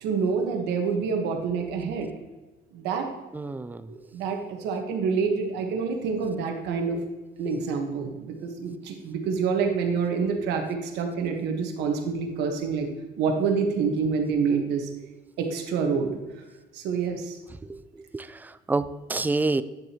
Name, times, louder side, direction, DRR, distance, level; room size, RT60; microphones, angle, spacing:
voice 1, 0.0-2.1 2.7-3.1 3.5-3.6 3.9-7.0 7.4-12.9 13.2-14.9 15.4-16.1 16.7-17.4, right 5 dB, 85° right, 1.2 m, -27 dB
voice 2, 3.3-3.9 17.7-19.6, right 3 dB, 10° right, 0.3 m, -28 dB
9.7 x 7.1 x 2.9 m
cardioid pair, 110°, 17 cm